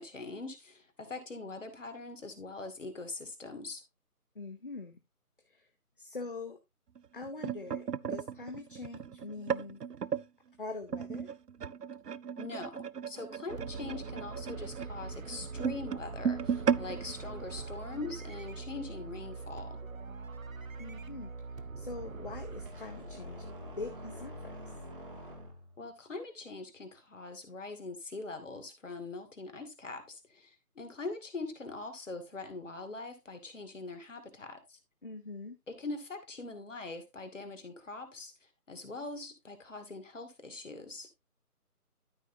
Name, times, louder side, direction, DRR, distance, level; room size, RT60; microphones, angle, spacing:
voice 1, 0.0-3.8 12.4-19.8 25.8-34.8 35.7-41.1, left 3 dB, 50° left, 2.5 m, -42 dB
voice 2, 4.3-5.0 5.4-5.7 6.0-6.6 7.1-9.8 10.6-11.3 20.8-23.5 23.8-24.6 35.0-35.6, left 3 dB, 35° left, 0.9 m, -43 dB
sound 1, 6.9-10.3 10.9-18.2 18.6-18.8 19.1-19.3 20.1-20.2, right 7 dB, 85° right, 0.6 m, -36 dB
sound 2, 13.5-22.7, right 4 dB, 60° right, 0.9 m, -43 dB
sound 3, 22.6-25.8, equal, 35° right, 2.3 m, -45 dB
12.5 x 6.0 x 2.8 m
figure-of-eight pair, 155°, 46 cm